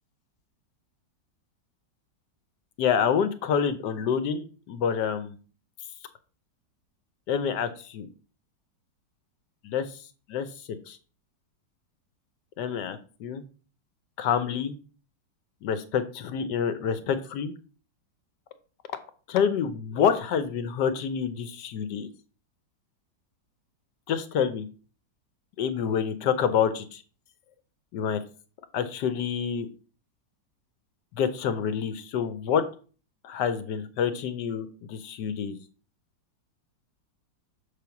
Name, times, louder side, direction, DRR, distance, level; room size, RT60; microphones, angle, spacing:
voice 1, 2.8-5.4 7.3-8.1 9.6-10.0 10.3-10.5 10.9-11.0 12.6-13.4 14.2-14.7 15.6-17.5 19.3-22.1 24.1-24.7 25.6-26.8 27.9-28.2 28.7-29.7 31.1-32.6 33.2-35.6, left 7 dB, 75° left, 11 dB, 1.3 m, -27 dB
6.8 x 3.3 x 5.8 m, 0.38 s
omnidirectional pair, 1.9 m